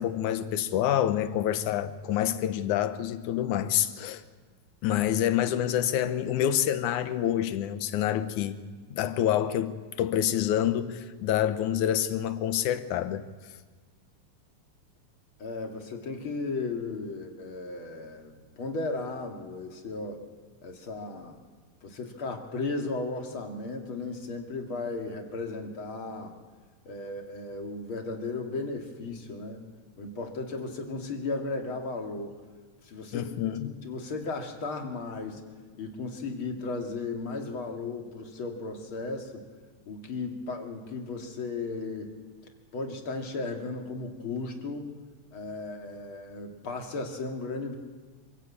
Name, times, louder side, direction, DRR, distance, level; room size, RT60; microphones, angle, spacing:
voice 1, 0.0-4.2 4.8-8.6 8.9-13.2 33.1-33.7, left 11 dB, 85° left, 2.5 m, -27 dB
voice 2, 15.4-20.2 20.6-21.4 21.8-26.4 26.8-29.7 30.0-32.3 32.8-33.3 33.6-35.4 35.8-39.4 39.9-42.1 42.7-45.0 45.3-47.8, left 3 dB, 45° left, 2.9 m, -35 dB
26.5 x 14.5 x 8.5 m
omnidirectional pair, 3.4 m